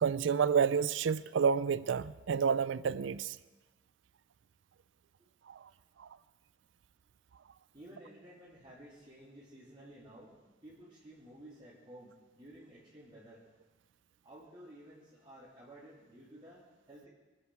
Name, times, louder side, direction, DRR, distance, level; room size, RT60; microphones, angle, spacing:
voice 1, 0.0-3.4, right 6 dB, 90° right, 0.4 m, -29 dB
voice 2, 7.7-10.4 10.6-13.4 14.2-17.1, right 1 dB, 25° right, 3.0 m, -54 dB
24.5 x 8.6 x 6.2 m
head